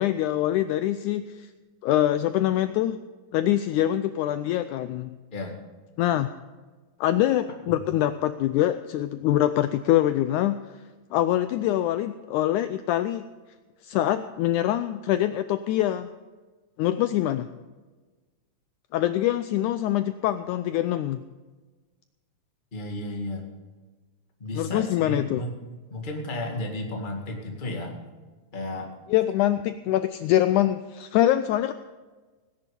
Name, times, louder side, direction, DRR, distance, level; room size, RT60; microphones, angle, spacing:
voice 1, 0.0-1.5 1.8-3.0 3.3-5.2 6.0-6.3 7.0-10.6 11.1-13.2 13.8-16.1 16.8-17.5 18.9-21.2 24.5-25.4 29.1-31.7, left 13 dB, 90° left, 11 dB, 1.7 m, -24 dB
voice 2, 22.7-23.4 24.4-25.5 25.9-28.0 28.5-28.9, left 1 dB, 20° left, 0 dB, 1.4 m, -33 dB
18.0 x 10.5 x 5.2 m, 1.3 s
omnidirectional pair, 4.0 m